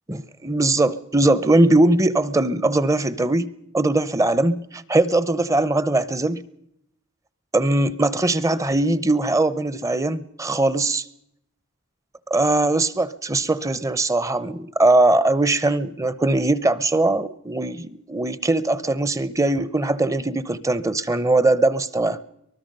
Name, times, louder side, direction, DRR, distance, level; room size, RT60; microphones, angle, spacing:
voice 1, 0.1-3.5 3.7-6.4 7.5-11.0 12.3-22.2, right 2 dB, 15° right, 17 dB, 0.7 m, -20 dB
24.0 x 20.0 x 5.4 m, 0.77 s
head